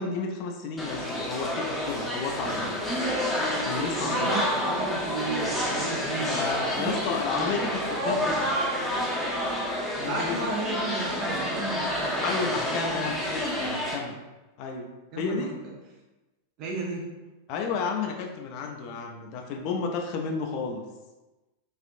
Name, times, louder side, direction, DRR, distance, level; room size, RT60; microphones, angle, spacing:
voice 1, 0.0-2.9 3.7-4.4 6.3-8.4 10.0-10.5 12.2-14.2 14.6-14.9 15.2-15.5 17.5-20.8, left 4 dB, 45° left, 2 dB, 0.4 m, -32 dB
sound 1, 0.8-14.0, equal, 5° left, 0.7 m, -29 dB
voice 2, 3.9-6.4 6.7-7.6 10.0-12.2 12.7-13.1 15.1-15.7 16.6-17.2, right 2 dB, 40° right, -1 dB, 0.7 m, -34 dB
4.2 x 2.5 x 2.5 m, 1.1 s
figure-of-eight pair, 90°, 0 cm